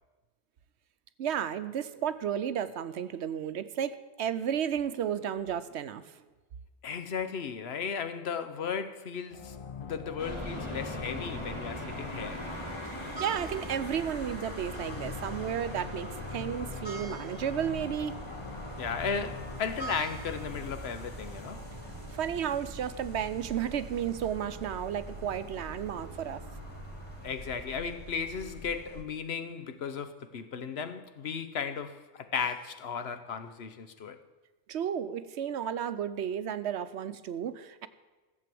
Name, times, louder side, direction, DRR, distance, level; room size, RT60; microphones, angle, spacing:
voice 1, 1.2-6.2 13.2-18.1 22.1-26.4 34.7-37.9, right 9 dB, 70° right, 0.9 m, -33 dB
voice 2, 6.8-12.5 18.8-21.6 27.2-34.2, left 6 dB, 65° left, 1.0 m, -35 dB
sound 1, 9.3-22.6, left 6 dB, 45° left, 0.4 m, -45 dB
sound 2, 10.2-27.3, left 1 dB, 25° left, 1.9 m, -43 dB
sound 3, 10.2-29.0, right 3 dB, 20° right, 1.5 m, -44 dB
14.5 x 7.6 x 7.6 m
omnidirectional pair, 1.2 m